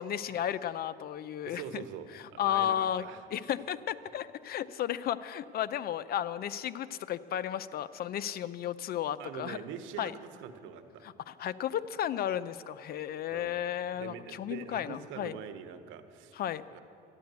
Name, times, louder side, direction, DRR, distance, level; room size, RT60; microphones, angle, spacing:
voice 1, 0.0-1.8 2.4-3.0 3.3-9.6 10.0-10.1 11.3-15.4 16.4-16.6, left 10 dB, 50° left, 16 dB, 0.6 m, -33 dB
voice 2, 1.4-3.5 9.2-11.1 13.3-13.6 13.9-16.4 16.7-16.8, right 8 dB, 75° right, 9 dB, 1.1 m, -44 dB
13.0 x 10.5 x 8.1 m, 2.7 s
supercardioid pair, 95°, 20 cm